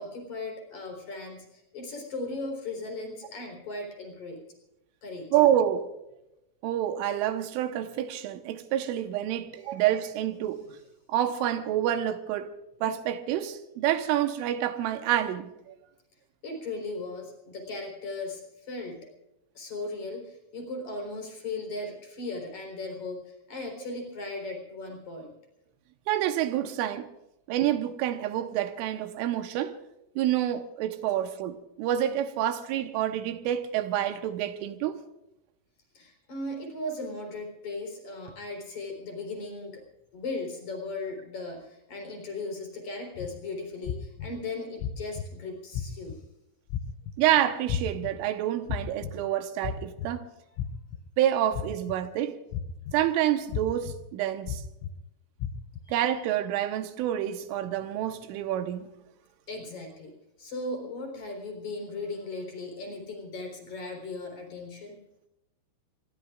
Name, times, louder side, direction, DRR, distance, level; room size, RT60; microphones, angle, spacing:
voice 1, 0.0-4.4 5.0-5.3 9.6-9.7 16.4-19.1 19.5-25.3 35.9-39.8 40.1-46.2 55.8-56.0 59.5-60.1 60.4-65.0, left 2 dB, 40° left, 4.9 m, -37 dB
voice 2, 5.3-5.9 6.6-10.7 11.1-12.5 12.8-15.8 26.1-27.1 27.5-29.8 30.2-35.0 47.2-50.2 51.2-52.4 52.9-54.6 55.9-58.9, right 11 dB, 80° right, 3.5 m, -28 dB
sound 1, 43.2-43.3 43.9-44.3 44.8-45.3 45.7-46.2 46.7-47.1 47.7-48.1 48.7-49.1 49.6-50.1 50.6-51.0 51.5-52.0 52.5-52.9 53.5-53.9 54.5-54.9 55.4-55.8, left 9 dB, 85° left, 3.5 m, -32 dB
25.5 x 21.5 x 2.5 m
omnidirectional pair, 5.7 m